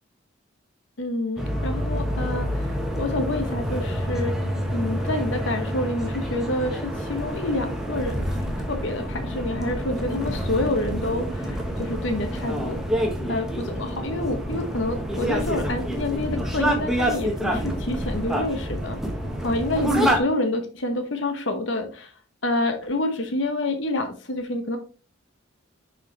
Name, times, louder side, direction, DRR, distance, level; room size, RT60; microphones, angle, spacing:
voice 1, 1.0-4.4 4.7-12.9 13.3-19.0 19.4-22.1 22.4-24.8, left 2 dB, 70° left, 6 dB, 1.0 m, -28 dB
sound 1, 1.4-20.2, equal, ahead, 1.0 m, -27 dB
6.3 x 5.0 x 3.2 m, 0.35 s
head